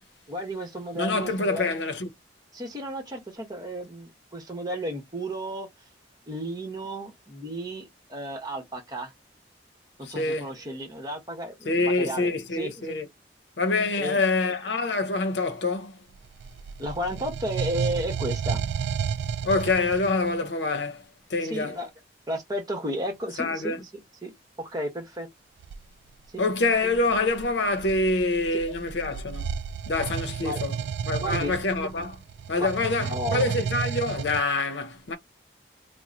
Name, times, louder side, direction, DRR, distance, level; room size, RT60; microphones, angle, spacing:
voice 1, 0.3-1.7 2.5-5.7 6.3-9.1 10.0-13.0 14.0-14.2 16.8-18.6 21.4-21.9 22.3-23.8 24.2-24.3 24.6-25.3 26.3-26.4 28.7-28.8 30.4-30.6 31.1-31.6 32.6-32.7 33.0-33.5, equal, 20° right, 1.1 m, -33 dB
voice 2, 1.0-2.1 10.0-10.5 11.6-13.1 13.6-16.0 19.4-21.8 23.4-23.8 26.4-29.6 29.9-30.8 31.0-32.2 32.5-35.2, left 2 dB, 85° left, 0.7 m, -26 dB
sound 1, 16.2-20.3 25.6-25.8 26.6-34.4, right 6 dB, 70° right, 0.3 m, -32 dB
3.0 x 2.1 x 3.8 m
head